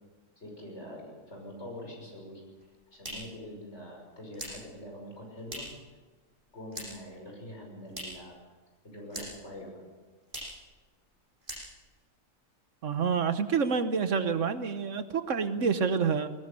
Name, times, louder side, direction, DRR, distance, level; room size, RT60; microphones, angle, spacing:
voice 1, 0.4-2.4 2.9-5.7 6.5-8.4 8.8-9.8, left 1 dB, 55° left, 0 dB, 6.4 m, -44 dB
sound 1, 2.5-5.9 6.2-7.2 7.4-8.4 8.6-9.6 9.8-9.9 10.2-10.7 11.0-11.1 11.4-12.0, equal, 40° right, 7.9 m, -43 dB
voice 2, 12.8-16.3, right 6 dB, 70° right, 10 dB, 1.4 m, -28 dB
20.5 x 19.0 x 6.8 m, 1.3 s
omnidirectional pair, 1.4 m